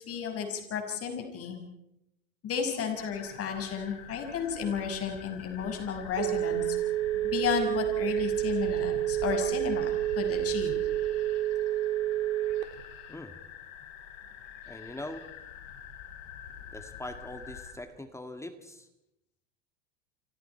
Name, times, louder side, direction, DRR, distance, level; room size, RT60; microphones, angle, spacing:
voice 1, 0.0-1.6 2.4-6.8 7.2-10.8, left 7 dB, 35° left, 4 dB, 5.9 m, -33 dB
sound 1, 3.0-17.7, left 7 dB, 65° left, 6.0 m, -46 dB
Telephone, 5.6-13.0, right 13 dB, 65° right, 3.4 m, -29 dB
voice 2, 14.7-15.2 16.7-18.9, left 1 dB, 5° left, 7 dB, 2.0 m, -42 dB
29.0 x 27.0 x 4.6 m, 0.85 s
hypercardioid pair, 110°, 39 cm